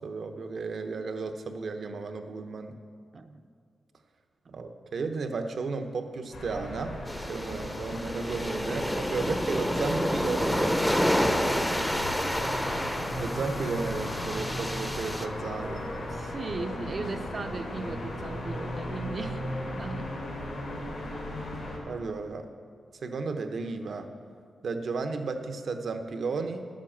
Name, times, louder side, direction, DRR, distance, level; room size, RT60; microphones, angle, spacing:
voice 1, 0.0-2.8 4.5-7.0 7.3-10.8 11.2-11.9 13.2-15.8 21.9-22.5 23.0-24.1 24.6-26.7, right 4 dB, 65° right, 7 dB, 0.9 m, -34 dB
sound 1, 6.3-21.8, left 1 dB, 85° left, 2.6 m, -36 dB
sound 2, 7.1-15.3, equal, ahead, 0.6 m, -29 dB
voice 2, 7.6-8.0 12.6-12.9 16.1-19.4 19.7-20.2, right 3 dB, 45° right, 8 dB, 0.6 m, -38 dB
11.0 x 7.5 x 7.2 m, 2.2 s
wide cardioid pair, 120°, 0 cm